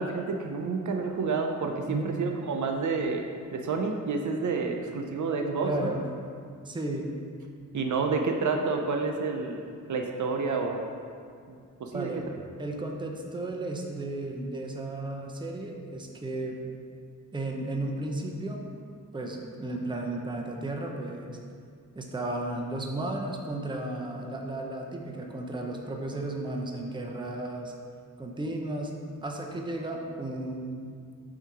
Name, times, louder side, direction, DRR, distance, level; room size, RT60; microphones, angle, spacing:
voice 1, 0.0-3.2 3.5-5.9 7.7-9.6 9.9-10.8 11.5-12.1, right 4 dB, 65° right, 3 dB, 0.5 m, -29 dB
voice 2, 5.6-6.0 6.6-7.1 11.9-12.2 12.6-16.6 17.3-18.6 19.1-21.4 21.9-27.7 28.2-28.9 29.2-30.9, right 2 dB, 15° right, 1 dB, 0.6 m, -34 dB
7.2 x 2.8 x 4.7 m, 2.2 s
wide cardioid pair, 100°, 32 cm